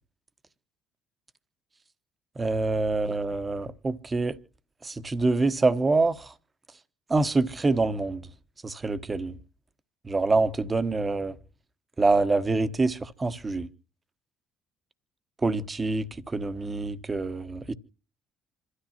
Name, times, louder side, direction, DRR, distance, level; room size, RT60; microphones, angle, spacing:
voice 1, 2.4-4.3 4.8-6.2 7.1-8.2 8.6-9.3 10.1-11.3 12.0-13.7 15.4-16.0 16.3-17.7, right 3 dB, 25° right, 1.2 m, -25 dB
27.5 x 13.0 x 2.9 m
hypercardioid pair, 55°, 0 cm